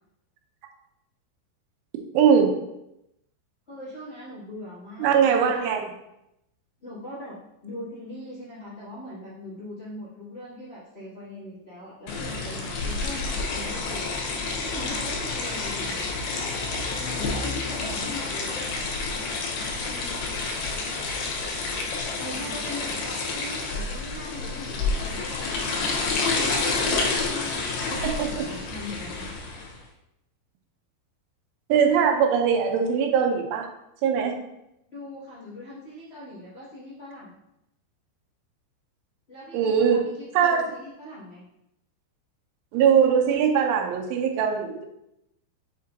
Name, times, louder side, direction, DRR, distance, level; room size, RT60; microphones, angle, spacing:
voice 1, 2.1-2.5 5.0-5.8 28.0-28.4 31.7-33.7 34.0-34.4 39.5-40.0 40.3-40.6 42.7-44.9, right 7 dB, 85° right, 3 dB, 3.2 m, -21 dB
voice 2, 3.7-5.8 6.8-16.1 17.0-18.6 19.7-20.3 22.2-29.3 34.9-37.4 39.3-41.4, left 1 dB, 90° left, -11 dB, 0.5 m, -40 dB
sound 1, 12.1-29.8, left 3 dB, 70° left, 2.5 m, -29 dB
7.3 x 5.2 x 2.7 m, 0.84 s
omnidirectional pair, 5.4 m